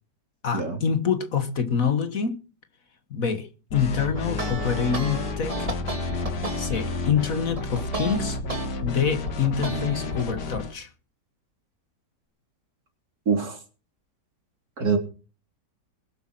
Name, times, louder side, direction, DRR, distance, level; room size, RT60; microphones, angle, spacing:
voice 1, 0.4-2.4 3.1-5.7 6.6-8.4 8.8-10.9, left 6 dB, 55° left, 1.8 m, -26 dB
sound 1, 3.7-10.8, left 3 dB, 80° left, 2.3 m, -31 dB
sound 2, 4.1-8.7 9.1-10.2, right 2 dB, 20° right, 2.3 m, -34 dB
voice 2, 13.3-13.6 14.8-15.0, right 5 dB, 60° right, 3.7 m, -24 dB
21.0 x 8.1 x 6.0 m
omnidirectional pair, 1.8 m